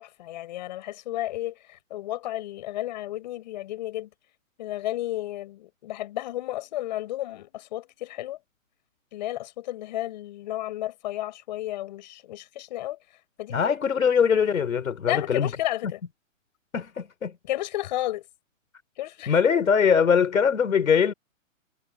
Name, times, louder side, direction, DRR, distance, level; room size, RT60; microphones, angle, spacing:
voice 1, 0.0-4.1 4.6-8.4 9.1-13.0 13.4-13.7 15.1-16.0 17.4-18.3 19.0-19.4, left 15 dB, 35° left, 5.9 m, -32 dB
voice 2, 13.5-15.5 16.7-17.3 19.3-21.1, left 7 dB, 85° left, 5.1 m, -22 dB
hypercardioid pair, 170°, 40 cm